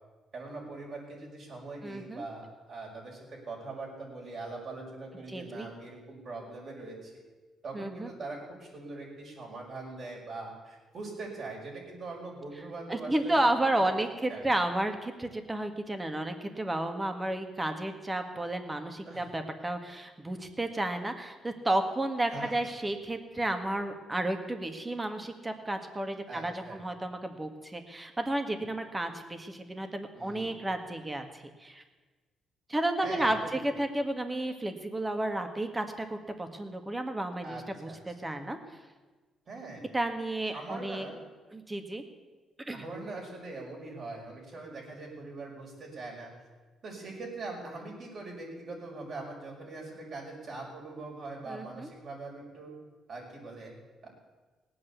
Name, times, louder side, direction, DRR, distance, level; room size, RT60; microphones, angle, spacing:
voice 1, 0.3-7.1 7.6-13.3 13.6-13.8 14.3-14.5 19.0-19.3 22.3-22.5 26.3-26.8 30.1-30.5 33.0-33.6 37.4-38.0 39.5-39.8 40.5-41.1 42.7-46.3 46.8-52.7 53.1-53.7 54.0-54.1, right 3 dB, 55° right, -2 dB, 6.1 m, -42 dB
voice 2, 1.8-2.3 5.3-5.7 7.7-8.1 12.9-31.8 32.7-38.6 39.9-41.1 41.5-42.0 42.7-42.8 51.5-51.9, right 1 dB, 15° right, 6 dB, 1.8 m, -32 dB
18.5 x 8.8 x 8.2 m, 1.3 s
cardioid pair, 90°, 0 cm